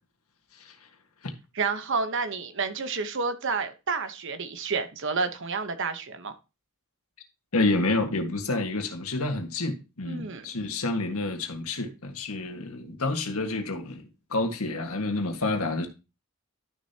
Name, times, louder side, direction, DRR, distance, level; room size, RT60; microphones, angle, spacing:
voice 1, 1.5-6.3 10.0-10.4, right 4 dB, 55° right, 1.0 m, -30 dB
voice 2, 7.5-15.9, left 2 dB, 75° left, 1.6 m, -29 dB
12.0 x 6.7 x 2.8 m
head